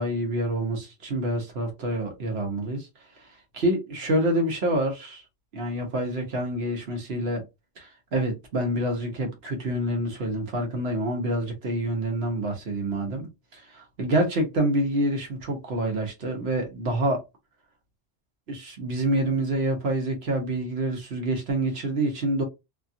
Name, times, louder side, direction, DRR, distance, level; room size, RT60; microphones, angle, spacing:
voice 1, 0.0-2.9 3.5-5.2 5.5-7.4 7.8-17.2 18.5-22.4, right 1 dB, 65° right, 1.3 m, -27 dB
2.9 x 2.4 x 2.7 m
omnidirectional pair, 1.2 m